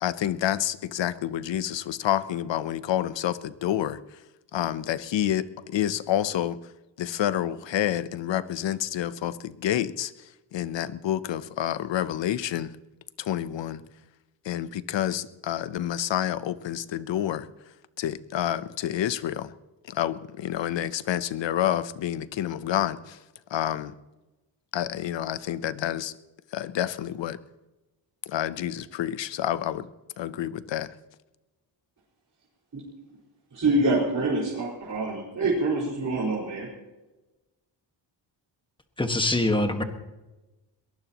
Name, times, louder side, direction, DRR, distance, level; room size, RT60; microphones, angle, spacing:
voice 1, 0.0-4.0 4.5-6.6 7.0-12.7 13.2-13.8 14.4-17.5 18.0-19.5 19.9-23.2 23.5-23.9 24.7-26.1 26.5-27.4 28.3-29.9 30.2-30.9, left 11 dB, 80° left, 15 dB, 0.8 m, -28 dB
voice 2, 33.5-36.7, right 2 dB, 45° right, -6 dB, 5.1 m, -26 dB
voice 3, 39.0-39.8, left 2 dB, 10° left, 6 dB, 1.6 m, -24 dB
22.0 x 19.5 x 3.0 m, 1.1 s
cardioid pair, 105°, 43 cm